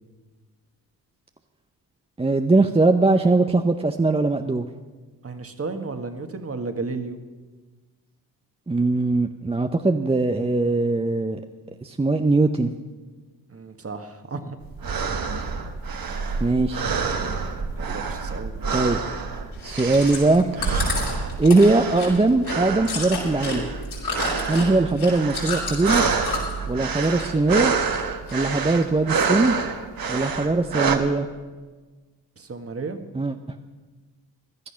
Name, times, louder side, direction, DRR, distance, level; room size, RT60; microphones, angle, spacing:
voice 1, 2.2-4.6 8.7-11.4 11.8-12.7 16.4-17.0 18.7-19.0 19.6-20.5 21.4-23.7 24.5-26.0 26.7-27.7 28.3-29.6 30.1-31.3 33.1-33.3, right 3 dB, 15° right, 6 dB, 0.7 m, -20 dB
voice 2, 5.2-7.2 13.5-14.6 17.7-18.6 32.4-33.0, right 3 dB, 35° right, 7 dB, 1.6 m, -33 dB
sound 1, 14.6-31.0, right 5 dB, 55° right, 1.5 m, -28 dB
Chewing mastication, 19.5-26.6 26.9-27.7 27.9-28.8 29.3-29.4, left 4 dB, 70° left, 5.6 m, -31 dB
16.5 x 11.5 x 5.8 m, 1.3 s
supercardioid pair, 55°, 42 cm